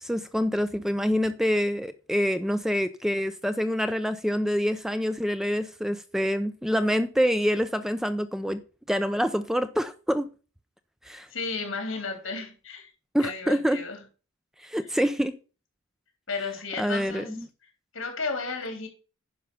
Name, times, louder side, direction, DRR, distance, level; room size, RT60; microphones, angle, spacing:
voice 1, 0.0-8.6 8.9-10.3 11.0-11.3 13.1-13.8 14.6-15.4 16.8-17.5, equal, ahead, 0.4 m, -26 dB
voice 2, 11.3-12.9 13.2-14.0 16.3-17.3 17.9-18.9, left 4 dB, 75° left, 3.5 m, -33 dB
10.5 x 5.5 x 5.5 m
head